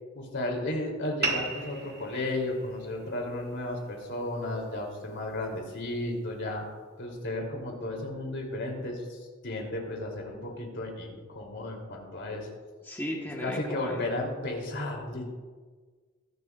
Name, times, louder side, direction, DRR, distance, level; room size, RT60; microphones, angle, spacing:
voice 1, 0.1-6.6 7.0-12.5 13.4-15.2, left 1 dB, 60° left, 0 dB, 3.5 m, -34 dB
sound 1, 1.2-6.3, right 3 dB, 50° right, 1.8 m, -38 dB
voice 2, 12.8-14.1, equal, 10° left, -2 dB, 1.5 m, -35 dB
23.0 x 12.0 x 2.6 m, 1.5 s
head